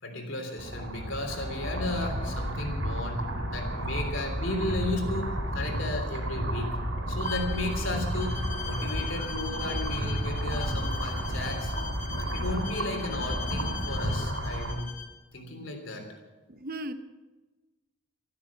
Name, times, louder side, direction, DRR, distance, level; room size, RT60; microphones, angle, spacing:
voice 1, 0.0-6.8 7.1-11.7 12.3-15.0 15.3-16.1, left 1 dB, 65° left, 4 dB, 3.2 m, -34 dB
sound 1, 0.6-14.7, equal, 65° right, 4.3 m, -32 dB
Bowed string instrument, 7.2-15.1, left 8 dB, 35° left, 1.5 m, -41 dB
voice 2, 16.5-16.9, right 1 dB, 45° right, 10 dB, 0.9 m, -37 dB
13.5 x 13.5 x 7.3 m, 1.2 s
head